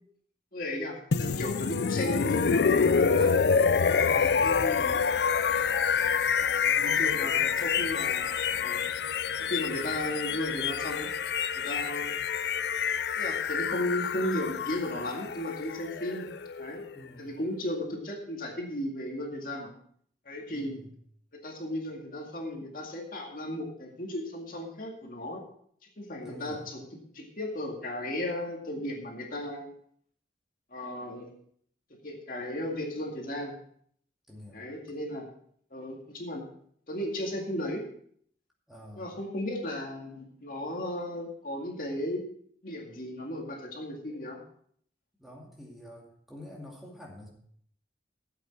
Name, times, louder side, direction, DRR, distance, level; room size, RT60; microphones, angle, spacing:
voice 1, 0.5-3.4 4.2-5.0 6.7-8.3 8.6-8.9 9.4-11.1 11.6-12.2 13.2-16.3 16.6-16.8 17.2-19.7 20.3-20.8 21.4-25.4 26.0-26.9 27.1-29.7 30.7-31.3 32.0-33.6 34.5-35.3 35.7-36.4 36.9-37.8 39.0-42.2 42.6-44.4, left 1 dB, 50° left, 0 dB, 2.1 m, -35 dB
sound 1, 1.1-17.0, left 6 dB, 70° left, 0.4 m, -27 dB
Rain, 3.7-8.7, left 3 dB, 85° left, 1.4 m, -51 dB
voice 2, 4.1-4.5 6.7-7.5 16.9-17.3 20.5-20.9 26.2-26.7 34.3-34.6 38.7-39.1 45.2-47.3, left 1 dB, ahead, -2 dB, 2.3 m, -47 dB
14.5 x 8.3 x 4.4 m, 0.63 s
head